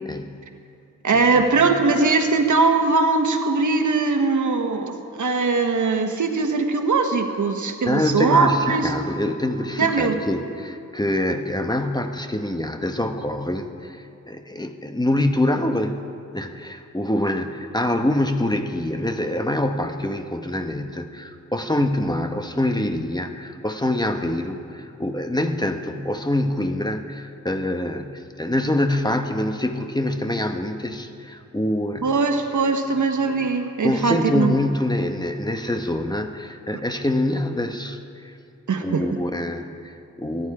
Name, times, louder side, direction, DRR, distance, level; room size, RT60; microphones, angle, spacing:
voice 1, 0.0-0.4 1.1-1.8 7.8-16.0 16.3-32.2 33.2-33.5 33.8-38.3 38.8-40.5, left 1 dB, 15° left, 5 dB, 1.2 m, -25 dB
voice 2, 1.0-8.9 9.8-10.2 32.0-34.5 38.7-39.1, right 4 dB, 70° right, 5 dB, 1.4 m, -20 dB
24.0 x 11.0 x 4.9 m, 2.6 s
cardioid pair, 50°, 31 cm